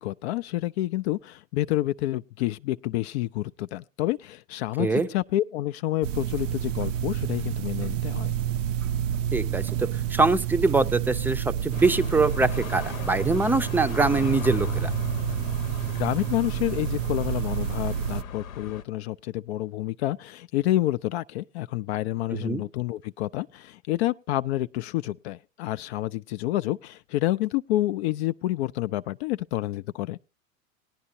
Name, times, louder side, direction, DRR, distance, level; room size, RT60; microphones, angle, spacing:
voice 1, 0.0-8.3 15.9-30.2, left 15 dB, 55° left, 0.5 m, -28 dB
sound 1, 6.0-18.2, right 10 dB, 65° right, 0.6 m, -29 dB
voice 2, 9.3-14.9 22.3-22.6, right 3 dB, 5° right, 0.5 m, -24 dB
sound 2, 11.7-18.8, left 3 dB, 85° left, 0.9 m, -37 dB
19.0 x 10.0 x 2.7 m
hypercardioid pair, 105°, 40 cm